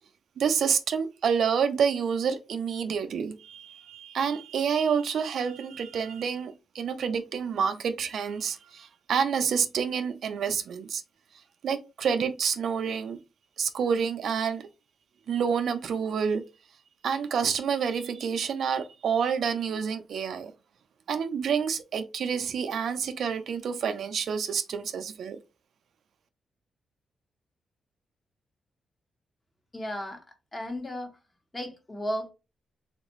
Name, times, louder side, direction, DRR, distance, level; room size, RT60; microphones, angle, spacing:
voice 1, 0.4-11.0 11.6-13.2 13.6-14.7 15.3-16.4 17.0-20.5 21.1-25.4, right 7 dB, 70° right, 0.4 m, -28 dB
voice 2, 29.7-30.2 30.5-31.1 31.5-32.3, equal, 20° left, 1.1 m, -34 dB
3.4 x 2.4 x 3.0 m
cardioid pair, 110°, 0 cm